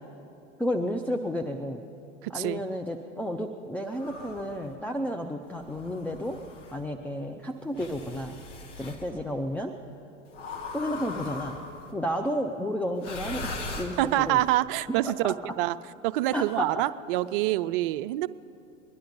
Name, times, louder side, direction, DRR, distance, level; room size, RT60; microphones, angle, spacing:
voice 1, 0.6-1.8 2.3-6.4 6.7-8.4 8.8-9.7 10.7-11.6 11.9-14.4 14.9-15.5 16.3-16.7, equal, 5° left, 4 dB, 0.5 m, -32 dB
voice 2, 2.2-2.6 14.0-15.8 16.0-18.3, right 16 dB, 45° right, 14 dB, 0.5 m, -26 dB
Man Blowing Candle Out, 3.9-4.6 5.6-6.8 7.7-9.0 10.3-11.9 13.0-14.4, left 3 dB, 75° left, 2.0 m, -39 dB
21.5 x 11.5 x 5.2 m, 2.7 s
figure-of-eight pair, 80°, 37 cm